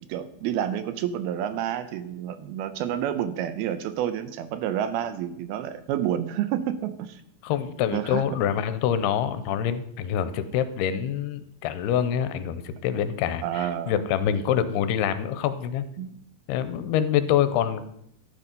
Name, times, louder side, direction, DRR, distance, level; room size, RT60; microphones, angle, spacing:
voice 1, 0.1-7.2 7.9-8.2 13.4-13.9 16.0-16.1, right 10 dB, 80° right, 12 dB, 2.4 m, -29 dB
voice 2, 7.4-15.9 16.5-17.8, left 9 dB, 85° left, 12 dB, 2.6 m, -26 dB
12.0 x 9.0 x 5.3 m, 0.73 s
omnidirectional pair, 4.7 m